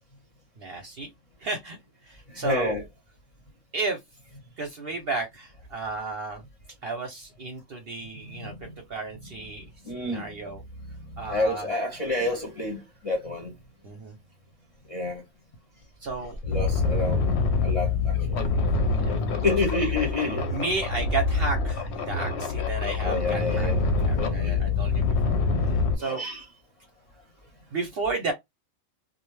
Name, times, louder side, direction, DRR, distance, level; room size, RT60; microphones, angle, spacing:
voice 1, 0.6-1.1 1.4-1.8 2.0-2.8 3.7-4.0 4.6-6.4 6.8-10.6 11.2-11.7 13.8-14.2 16.0-16.4 19.0-19.4 19.8-19.9 20.5-23.7 24.1-26.2 27.7-28.3, right 3 dB, 55° right, 0.8 m, -33 dB
voice 2, 2.3-2.8 8.2-8.5 9.8-10.5 10.9-13.5 14.9-15.2 16.4-18.1 18.4-18.5 19.4-20.5 23.0-24.9 26.0-26.4, left 2 dB, 35° left, 0.7 m, -30 dB
sound 1, 15.5-15.6 16.1-26.0, left 4 dB, 65° left, 0.8 m, -25 dB
2.5 x 2.1 x 3.1 m
omnidirectional pair, 1.3 m